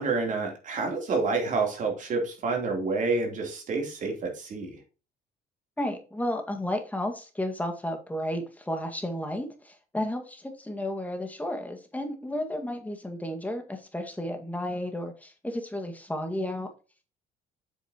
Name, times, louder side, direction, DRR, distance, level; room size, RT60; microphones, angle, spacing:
voice 1, 0.0-4.8, right 3 dB, 50° right, 2 dB, 3.3 m, -28 dB
voice 2, 5.8-16.7, left 1 dB, 10° left, 4 dB, 1.8 m, -32 dB
8.2 x 6.4 x 2.9 m, 0.33 s
cardioid pair, 110°, 17 cm